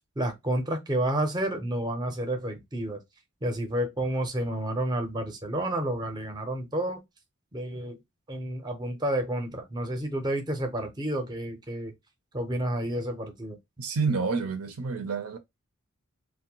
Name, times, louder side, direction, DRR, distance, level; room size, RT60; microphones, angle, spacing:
voice 1, 0.2-3.0 3.4-7.0 7.5-8.0 8.3-11.9 12.3-13.6, right 1 dB, 20° right, 0.6 m, -30 dB
voice 2, 13.8-15.4, right 4 dB, 75° right, 0.5 m, -28 dB
2.6 x 2.1 x 2.8 m
head